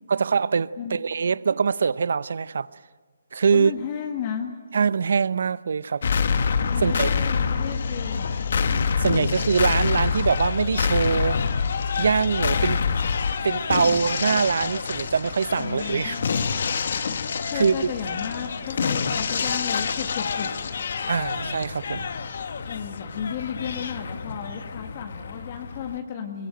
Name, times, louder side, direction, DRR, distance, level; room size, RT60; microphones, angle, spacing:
voice 1, 0.1-2.7 3.3-3.7 4.7-6.0 6.8-7.1 8.7-11.4 12.0-12.8 13.4-16.2 17.5-17.9 21.1-22.1, right 5 dB, 65° right, 18 dB, 0.7 m, -23 dB
voice 2, 3.5-4.6 6.7-8.5 15.6-16.5 17.4-20.5 22.7-26.5, left 8 dB, 35° left, 2 dB, 1.8 m, -34 dB
sound 1, 6.0-26.0, left 5 dB, 60° left, 1.3 m, -26 dB
22.5 x 19.0 x 9.1 m, 1.4 s
hypercardioid pair, 160°, 0 cm